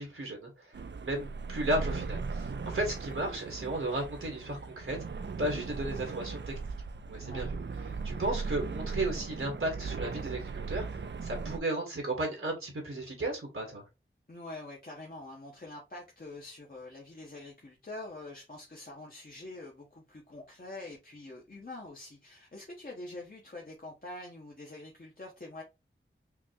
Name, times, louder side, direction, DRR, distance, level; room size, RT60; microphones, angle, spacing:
voice 1, 0.0-5.0 5.4-6.5 7.1-7.6 7.9-13.8, right 1 dB, 85° right, 1.5 m, -34 dB
sound 1, 0.7-11.6, right 4 dB, 60° right, 0.4 m, -38 dB
voice 2, 14.3-25.6, left 2 dB, 45° left, 0.9 m, -45 dB
5.7 x 2.2 x 2.8 m
wide cardioid pair, 60°, 21 cm